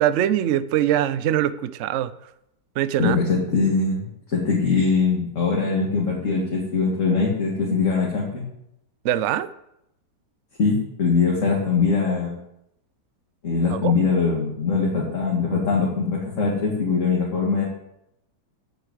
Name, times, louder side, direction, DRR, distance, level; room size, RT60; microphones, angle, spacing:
voice 1, 0.0-2.1 2.8-3.2 9.0-9.5 13.7-13.9, right 11 dB, 80° right, 15 dB, 0.6 m, -22 dB
voice 2, 3.0-4.1 4.3-8.4 10.6-12.4 13.4-17.6, left 4 dB, 45° left, -3 dB, 2.3 m, -22 dB
8.2 x 8.1 x 7.7 m, 0.80 s
omnidirectional pair, 1.9 m